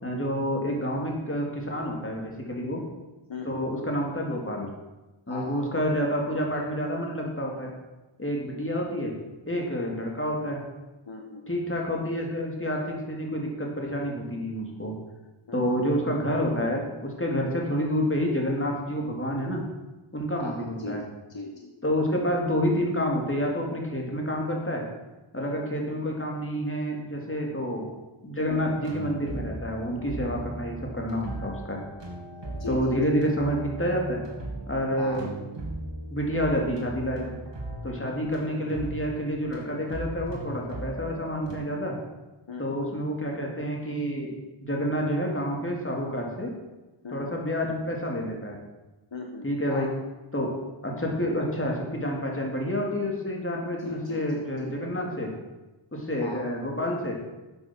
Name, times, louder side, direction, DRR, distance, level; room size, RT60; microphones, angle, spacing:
voice 1, 0.0-2.8 3.4-4.7 5.3-7.7 8.2-9.1 9.5-10.6 11.5-14.9 15.5-19.6 20.1-21.0 21.8-24.8 25.3-27.9 28.2-31.8 32.7-34.2 34.7-35.3 36.1-37.2 37.8-42.0 42.6-44.3 44.6-46.5 47.1-48.6 49.4-49.9 50.3-50.6 50.8-55.3 55.9-57.2, equal, 25° left, -1 dB, 3.1 m, -28 dB
voice 2, 3.3-3.7 5.3-5.6 11.1-11.4 15.5-15.8 20.4-21.0 21.3-21.7 25.5-25.7 28.4-28.8 32.5-33.0 35.0-35.3 37.9-38.3 42.5-43.0 47.0-47.4 49.1-49.9 53.8-54.7 56.2-56.4, left 3 dB, 60° left, 1 dB, 1.5 m, -38 dB
sound 1, 28.5-41.6, right 1 dB, 55° right, 3.1 m, -38 dB
12.0 x 7.8 x 6.4 m, 1.1 s
wide cardioid pair, 65°, 50 cm